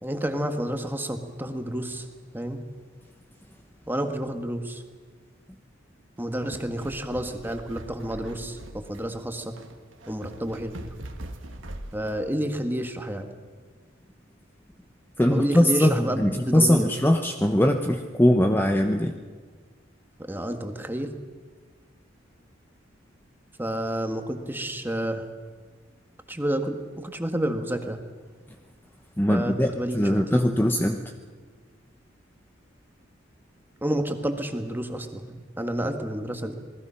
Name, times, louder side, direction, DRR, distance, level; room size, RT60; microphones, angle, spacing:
voice 1, 0.0-2.1 2.3-2.6 3.9-4.8 6.2-9.5 10.1-10.9 11.9-13.3 15.3-16.9 20.2-21.1 23.6-25.2 26.3-28.0 29.3-30.5 33.8-36.5, right 1 dB, 10° right, 6 dB, 1.6 m, -30 dB
sound 1, 6.2-12.3, right 1 dB, 70° right, 1.6 m, -42 dB
voice 2, 15.2-19.1 29.2-31.0, left 1 dB, 10° left, 4 dB, 0.8 m, -21 dB
27.5 x 20.0 x 5.8 m, 1.5 s
head